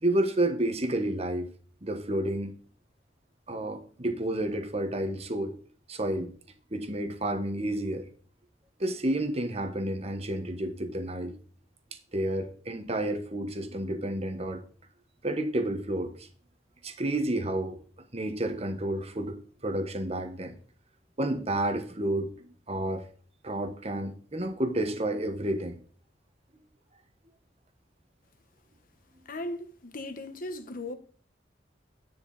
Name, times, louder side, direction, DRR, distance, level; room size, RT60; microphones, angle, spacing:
voice 1, 0.0-1.5 1.8-2.5 3.5-5.6 5.9-6.3 6.7-8.0 8.8-11.3 12.1-14.6 15.2-16.3 16.8-17.8 18.1-19.4 19.6-20.6 21.2-23.0 23.4-25.8, right 1 dB, 35° right, 1.4 m, -30 dB
voice 2, 29.3-30.9, left 1 dB, 50° left, 1.3 m, -37 dB
10.5 x 9.5 x 4.1 m
head